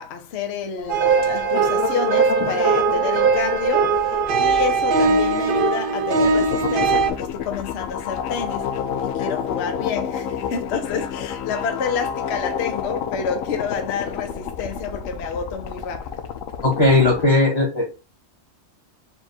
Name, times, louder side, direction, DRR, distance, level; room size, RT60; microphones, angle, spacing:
voice 1, 0.0-8.7 9.0-16.2, left 6 dB, 60° left, 0.9 m, -29 dB
sound 1, 0.8-17.3, left 7 dB, 90° left, 1.0 m, -30 dB
sound 2, 0.9-7.1, right 5 dB, 55° right, 0.6 m, -20 dB
voice 2, 16.6-17.9, left 2 dB, 30° left, 1.4 m, -17 dB
4.4 x 2.3 x 4.3 m
omnidirectional pair, 1.3 m